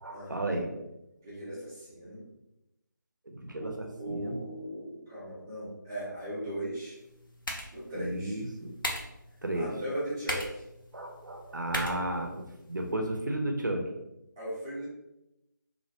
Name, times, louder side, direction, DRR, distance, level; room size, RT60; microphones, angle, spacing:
voice 1, 0.0-0.7 3.4-3.7 4.0-4.4 7.9-8.7 9.4-9.7 10.9-13.8, right 1 dB, 70° right, 3 dB, 0.5 m, -33 dB
voice 2, 1.2-2.3 3.6-7.0 7.7-8.4 9.5-10.6 14.4-14.9, right 1 dB, 10° right, -10 dB, 0.5 m, -38 dB
sound 1, 6.9-12.9, equal, 85° left, 0.6 m, -40 dB
2.4 x 2.1 x 2.7 m, 0.91 s
figure-of-eight pair, 160°, 11 cm